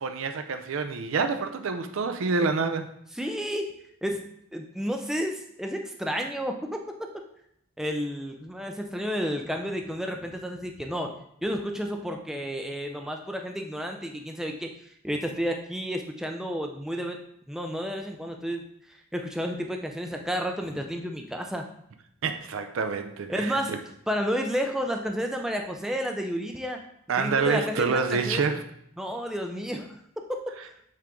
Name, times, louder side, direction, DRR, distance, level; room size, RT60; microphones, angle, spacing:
voice 1, 0.0-2.9 22.2-23.8 27.1-28.6, right 4 dB, 65° right, 8 dB, 0.5 m, -27 dB
voice 2, 3.1-3.7 4.0-4.2 4.5-7.2 7.8-11.1 11.4-17.2 17.5-18.6 18.9-21.6 23.3-23.7 24.1-26.8 27.2-28.4 29.0-29.9 30.2-30.8, equal, ahead, 3 dB, 0.4 m, -31 dB
7.4 x 3.5 x 3.7 m, 0.74 s
head